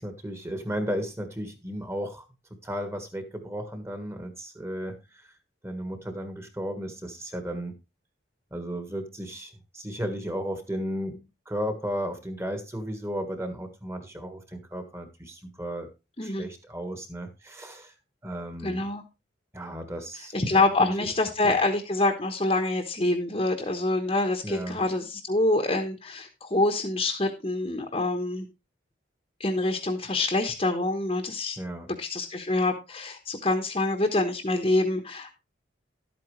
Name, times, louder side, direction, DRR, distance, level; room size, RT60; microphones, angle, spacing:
voice 1, 0.0-2.3 2.6-5.3 5.6-7.7 8.5-15.9 16.2-17.9 18.2-18.9 19.5-21.1 21.4-21.5 24.4-24.8 31.6-31.9, equal, 15° right, 7 dB, 1.5 m, -34 dB
voice 2, 18.6-19.0 20.3-28.5 29.4-31.6 32.0-35.3, left 2 dB, 30° left, 3 dB, 1.1 m, -26 dB
12.0 x 8.8 x 3.2 m, 0.26 s
head